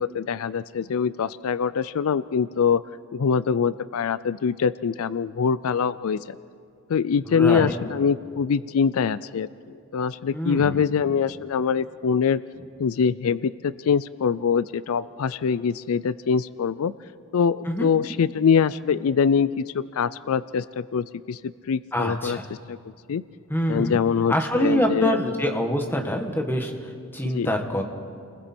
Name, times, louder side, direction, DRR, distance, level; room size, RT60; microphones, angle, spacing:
voice 1, 0.0-2.8 3.1-6.4 6.9-9.5 9.9-12.4 12.8-16.9 17.3-22.8 23.1-23.2 23.7-25.2 27.3-27.5, left 6 dB, 75° left, 17 dB, 0.4 m, -24 dB
voice 2, 7.2-7.7 10.3-10.8 17.7-17.9 21.9-22.5 23.5-24.0 24.3-27.8, equal, 10° left, 3 dB, 1.4 m, -25 dB
30.0 x 20.0 x 4.4 m, 2.3 s
head